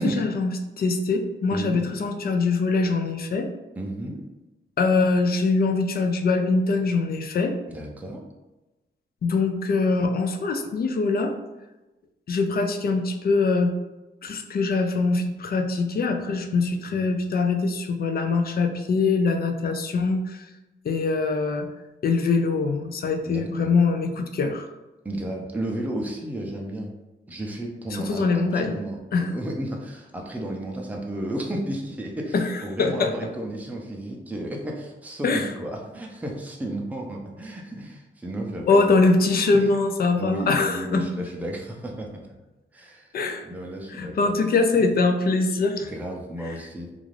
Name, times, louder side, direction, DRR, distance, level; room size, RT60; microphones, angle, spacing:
voice 1, 0.0-3.5 4.8-7.5 9.2-11.3 12.3-13.7 14.2-20.4 20.8-21.7 22.0-24.7 27.9-28.8 29.1-29.3 32.3-32.4 32.8-33.1 35.2-35.5 38.7-41.0 43.1-43.4 43.9-45.9, left 3 dB, 50° left, 5 dB, 0.4 m, -23 dB
voice 2, 1.5-1.9 3.8-4.2 7.7-8.2 16.9-17.1 23.2-23.7 25.0-26.9 27.3-38.8 39.5-39.7 40.2-42.2 42.7-43.1 43.4-44.3 45.8-46.9, right 1 dB, 10° right, 0 dB, 0.4 m, -33 dB
2.5 x 2.3 x 3.2 m, 1.0 s
cardioid pair, 90°, 20 cm